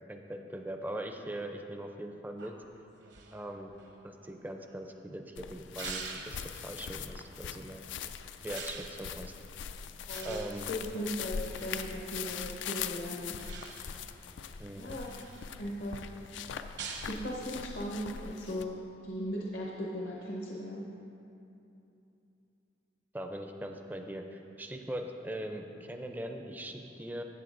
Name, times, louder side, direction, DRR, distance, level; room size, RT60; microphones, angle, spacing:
voice 1, 0.0-2.5 3.3-3.7 4.0-6.4 6.6-7.8 8.4-9.3 10.2-10.7 11.0-11.1 14.6-15.0 23.1-27.2, right 1 dB, 10° right, 4 dB, 0.4 m, -41 dB
sound 1, 2.4-5.0 5.8-6.8 8.5-9.0 10.1-12.0 13.4-14.1 14.6-15.5 16.8-17.2, right 5 dB, 70° right, 0.9 m, -45 dB
sound 2, 5.4-18.6, left 7 dB, 80° left, 0.4 m, -42 dB
voice 2, 10.1-10.4 10.9-13.6 14.8-15.2 15.6-16.1 16.8-20.9, equal, 65° left, -2 dB, 0.9 m, -38 dB
13.5 x 8.7 x 2.5 m, 2.8 s
head